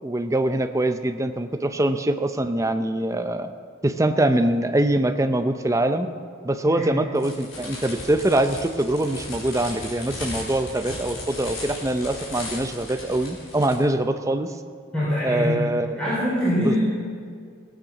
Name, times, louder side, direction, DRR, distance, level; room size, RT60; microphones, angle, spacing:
voice 1, 0.0-3.5 3.8-6.1 6.4-14.5 15.2-16.0 16.6-16.8, right 1 dB, 15° right, 8 dB, 0.6 m, -23 dB
sound 1, 7.1-13.8, left 2 dB, 65° left, 4.2 m, -36 dB
voice 2, 14.9-15.6 16.0-16.8, left 1 dB, 5° left, -11 dB, 4.0 m, -23 dB
18.0 x 9.0 x 6.0 m, 2.2 s
head